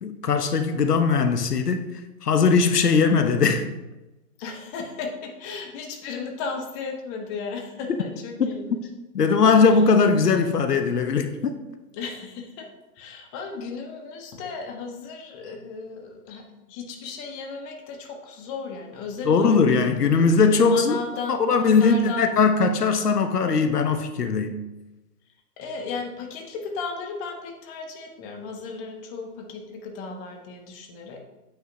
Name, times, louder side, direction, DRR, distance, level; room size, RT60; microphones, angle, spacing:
voice 1, 0.0-3.7 8.4-8.5 9.1-11.5 19.3-21.0 21.4-24.6, left 5 dB, 75° left, 1.0 m, -20 dB
voice 2, 4.4-8.8 9.6-9.8 11.9-12.7 12.9-19.8 20.6-22.3 25.6-31.2, left 4 dB, 30° left, 1.4 m, -35 dB
9.2 x 7.9 x 2.8 m
figure-of-eight pair, 120°, 47 cm